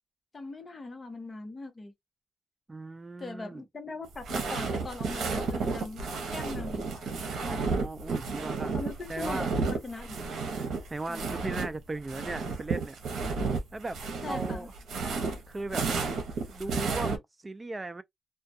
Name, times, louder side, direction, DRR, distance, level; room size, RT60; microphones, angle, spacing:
voice 1, 0.3-1.9 3.2-6.0 6.3-7.1 7.4-7.7 8.7-10.6 11.1-11.3 14.2-14.7, left 3 dB, 30° left, 0.9 m, -40 dB
voice 2, 2.7-3.6 7.4-8.8 9.1-9.5 10.9-13.0 13.7-14.7 15.5-15.8 16.5-17.1 17.4-18.0, right 2 dB, 20° right, 0.3 m, -37 dB
sound 1, 4.1-11.7 12.0-17.2, right 4 dB, 85° right, 0.7 m, -32 dB
2.3 x 2.2 x 2.5 m
cardioid pair, 100°, 0 cm